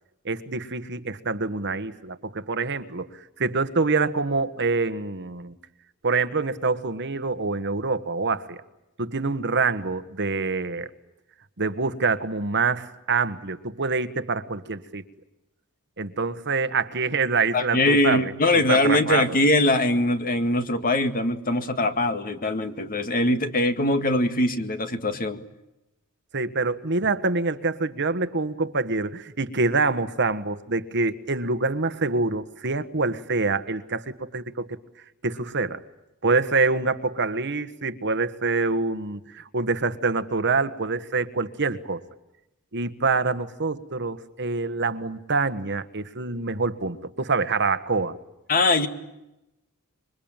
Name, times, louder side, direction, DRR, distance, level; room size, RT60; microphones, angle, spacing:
voice 1, 0.2-5.5 6.0-8.6 9.0-10.9 11.6-15.0 16.0-19.2 26.3-34.8 35.2-35.8 36.2-42.0 42.7-48.2, right 4 dB, 55° right, 11 dB, 1.5 m, -26 dB
voice 2, 17.5-25.4 48.5-48.9, left 2 dB, 40° left, 8 dB, 2.0 m, -22 dB
26.5 x 24.0 x 9.0 m, 0.92 s
head